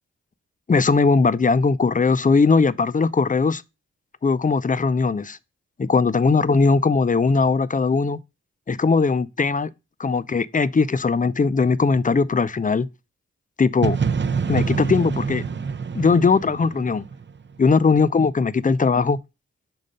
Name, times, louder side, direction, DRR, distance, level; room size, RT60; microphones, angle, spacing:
voice 1, 0.7-3.6 4.2-5.4 5.8-8.2 8.7-9.7 10.0-12.9 13.6-14.0 14.5-15.4 15.9-17.0 17.6-19.2, left 4 dB, 30° left, 0.5 m, -19 dB
sound 1, 13.8-17.7, right 5 dB, 40° right, 0.6 m, -26 dB
5.3 x 3.8 x 5.3 m
cardioid pair, 45°, 29 cm